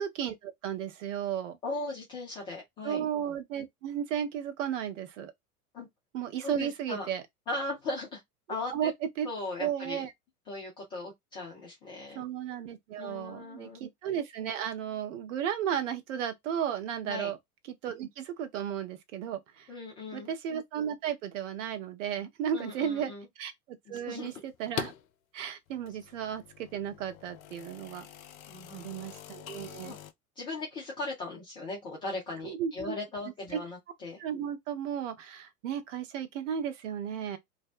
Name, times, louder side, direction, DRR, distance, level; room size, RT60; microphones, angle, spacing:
voice 1, 0.0-1.6 2.8-5.3 6.1-7.2 8.7-8.9 9.2-9.3 9.6-10.1 12.1-17.4 17.8-19.7 20.1-23.1 23.4-24.9 25.3-28.1 28.7-30.0 32.4-33.0 34.2-37.4, right 9 dB, 55° right, 0.7 m, -34 dB
voice 2, 1.6-3.0 5.7-5.9 6.4-7.1 7.5-8.2 8.5-8.9 9.2-10.0 10.5-12.2 13.0-13.8 17.0-17.3 19.7-20.3 22.5-23.3 23.9-24.3 28.5-28.9 29.8-30.0 30.4-34.2, left 2 dB, 10° left, 0.3 m, -38 dB
sound 1, 23.9-25.1 25.7-30.1, left 10 dB, 65° left, 0.5 m, -44 dB
2.7 x 2.1 x 2.3 m
figure-of-eight pair, 90°, 46 cm